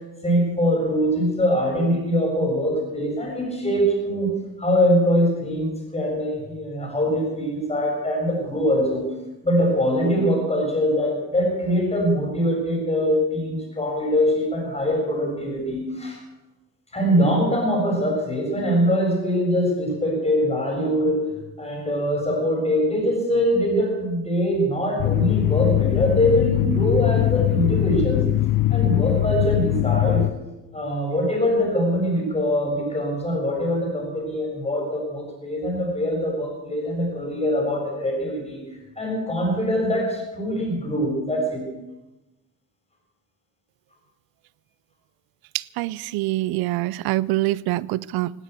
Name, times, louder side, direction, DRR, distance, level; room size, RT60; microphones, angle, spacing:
voice 1, 0.2-4.3 4.6-9.1 9.4-16.2 16.9-21.2 21.6-28.3 28.7-30.3 30.7-38.6 39.0-41.6, equal, 15° left, 1 dB, 7.2 m, -23 dB
sound 1, 25.0-30.3, left 15 dB, 65° left, 0.8 m, -21 dB
voice 2, 45.5-48.3, right 17 dB, 90° right, 22 dB, 0.6 m, -25 dB
18.0 x 9.7 x 8.2 m, 1.0 s
cardioid pair, 100°, 36 cm